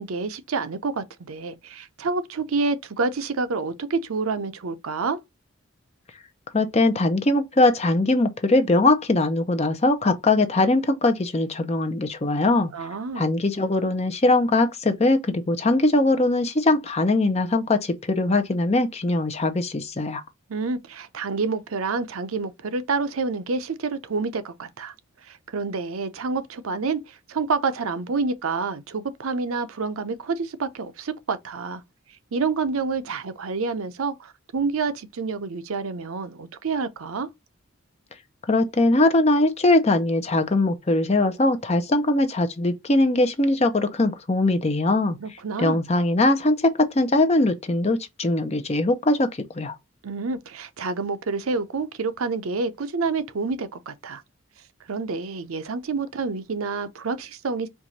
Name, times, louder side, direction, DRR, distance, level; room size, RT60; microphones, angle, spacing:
voice 1, 0.0-5.2 12.7-13.4 20.5-24.9 25.2-31.8 32.3-37.3 45.2-45.8 50.0-54.2 54.9-57.7, right 4 dB, 80° right, 0.6 m, -28 dB
voice 2, 6.5-12.7 13.2-20.2 38.5-45.2 45.6-49.3 49.5-49.7, left 2 dB, 30° left, 0.6 m, -21 dB
4.6 x 2.5 x 4.0 m
head